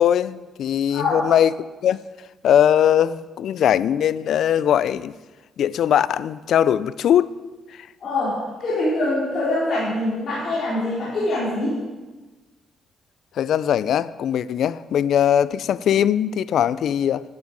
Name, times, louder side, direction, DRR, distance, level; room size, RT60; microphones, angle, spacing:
voice 1, 0.0-1.5 1.8-2.0 2.4-5.1 5.6-7.3 13.4-17.2, left 10 dB, 70° left, 0.4 m, -20 dB
voice 2, 0.9-1.2 8.0-11.8, left 2 dB, 55° left, 4.2 m, -24 dB
12.0 x 9.5 x 5.1 m
cardioid pair, 90°, 0 cm